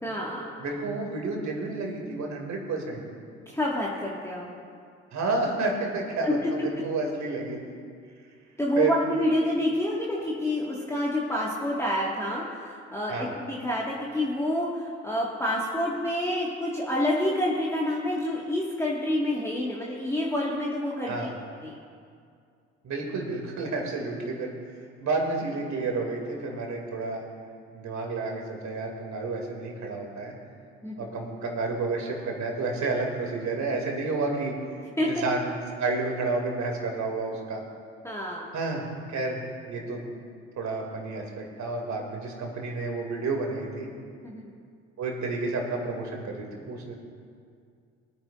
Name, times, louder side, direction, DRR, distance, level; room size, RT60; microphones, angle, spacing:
voice 1, 0.0-0.5 3.5-4.5 6.2-6.3 6.6-6.7 8.6-21.3 21.6-21.8 30.8-31.1 35.0-35.2 38.0-38.5 44.2-44.4, left 1 dB, 5° left, -5 dB, 1.8 m, -28 dB
voice 2, 0.6-3.0 5.1-7.6 8.8-9.0 13.1-13.3 21.1-21.3 22.8-24.5 25.0-27.2 27.7-30.3 31.0-34.5 35.0-35.5 35.8-37.6 38.5-38.8 39.1-39.4 39.7-40.0 40.6-43.9 45.0-46.9, right 3 dB, 50° right, 1 dB, 2.6 m, -30 dB
22.0 x 9.6 x 2.5 m, 2.3 s
figure-of-eight pair, 50°, 36 cm